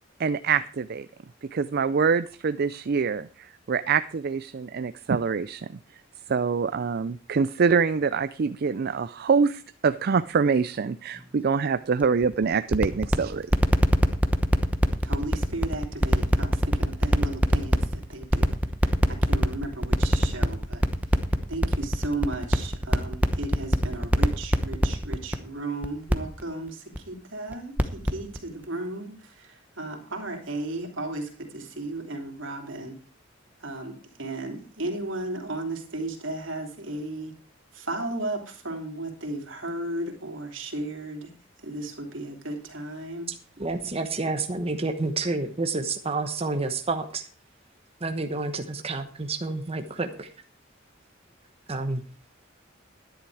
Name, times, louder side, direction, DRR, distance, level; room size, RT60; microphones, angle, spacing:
voice 1, 0.2-1.1 1.5-5.8 6.3-13.5, right 5 dB, 55° right, 13 dB, 0.4 m, -25 dB
sound 1, 12.0-25.3 25.8-26.1 26.4-26.5 26.9-27.0 27.5-28.1 28.3-28.4, equal, 10° right, 1.0 m, -21 dB
voice 2, 15.0-18.5 18.8-21.2 21.5-33.0 33.6-37.3 37.7-41.3 41.6-43.3, right 2 dB, 85° right, 3 dB, 3.0 m, -35 dB
voice 3, 43.6-47.2 48.0-50.3 51.7-52.0, right 3 dB, 30° right, 6 dB, 1.0 m, -29 dB
12.0 x 10.5 x 4.8 m, 0.39 s
head